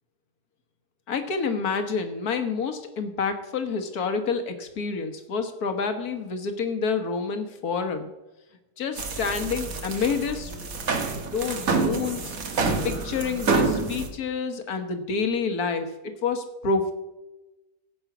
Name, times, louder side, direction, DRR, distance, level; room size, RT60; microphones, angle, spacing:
voice 1, 1.1-8.1 8.8-10.6 11.3-12.4 12.8-16.9, left 5 dB, 70° left, 8 dB, 1.8 m, -28 dB
sound 1, 9.0-14.1, right 4 dB, 65° right, 1.8 m, -27 dB
16.0 x 5.5 x 6.0 m, 1.0 s
omnidirectional pair, 1.6 m